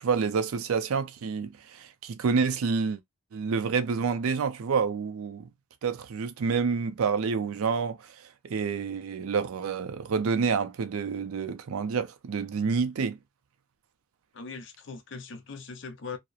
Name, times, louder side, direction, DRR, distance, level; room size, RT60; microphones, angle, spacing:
voice 1, 0.0-3.0 3.3-5.5 5.8-8.0 8.4-13.2, right 5 dB, 85° right, 0.4 m, -28 dB
voice 2, 14.3-16.2, left 4 dB, 60° left, 0.5 m, -40 dB
2.8 x 2.0 x 2.3 m
head